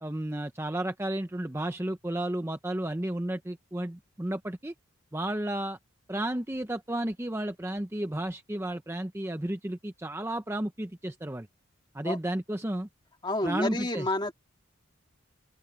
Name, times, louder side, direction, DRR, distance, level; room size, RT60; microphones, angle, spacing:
voice 1, 0.0-4.7 5.1-5.8 6.1-11.5 11.9-12.9 13.4-14.1, right 1 dB, 10° right, 0.6 m, -32 dB
voice 2, 13.2-14.3, left 1 dB, 20° left, 2.2 m, -29 dB
open air
head